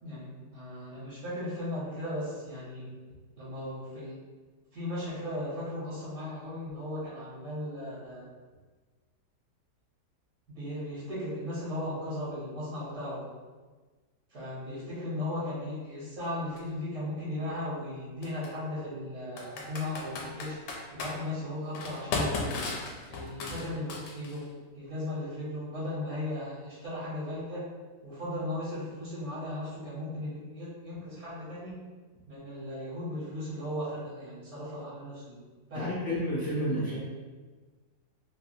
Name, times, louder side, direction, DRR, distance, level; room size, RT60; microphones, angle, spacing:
voice 1, 0.0-3.0 3.4-4.2 4.7-8.3 10.5-13.3 14.3-20.6 20.9-22.6 23.1-27.7 28.0-31.7 32.3-35.4 35.7-36.0, left 1 dB, 60° right, -9 dB, 1.5 m, -36 dB
Computer keyboard, 16.6-16.7 18.2-18.5 19.4-21.1 21.7-24.4, left 3 dB, 85° left, 1.2 m, -34 dB
voice 2, 35.7-37.0, equal, 65° left, -7 dB, 0.9 m, -30 dB
3.2 x 2.4 x 2.6 m, 1.4 s
omnidirectional pair, 1.8 m